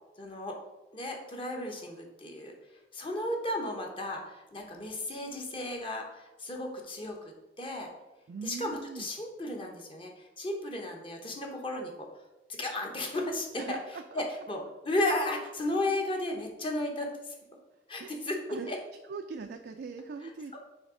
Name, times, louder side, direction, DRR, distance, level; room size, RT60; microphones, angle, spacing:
voice 1, 0.2-0.6 0.9-2.5 2.9-7.2 7.6-7.9 8.4-12.1 12.5-13.8 14.1-17.1 17.9-18.8, left 1 dB, 30° left, 1 dB, 0.8 m, -34 dB
voice 2, 8.3-9.1 13.6-14.2 18.0-18.2 18.5-18.7 19.1-20.6, right 5 dB, 60° right, 6 dB, 0.3 m, -41 dB
6.4 x 3.3 x 4.9 m, 1.0 s
head